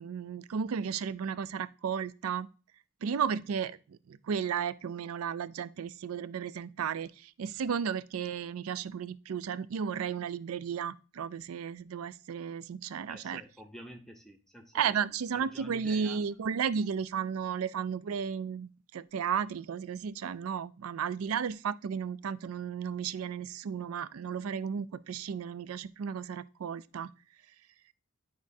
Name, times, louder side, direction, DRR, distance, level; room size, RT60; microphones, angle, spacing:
voice 1, 0.0-2.5 3.0-13.4 14.7-27.1, right 7 dB, 90° right, 0.4 m, -34 dB
voice 2, 13.1-15.0 15.3-16.2, equal, ahead, 0.7 m, -49 dB
10.5 x 5.1 x 2.6 m
head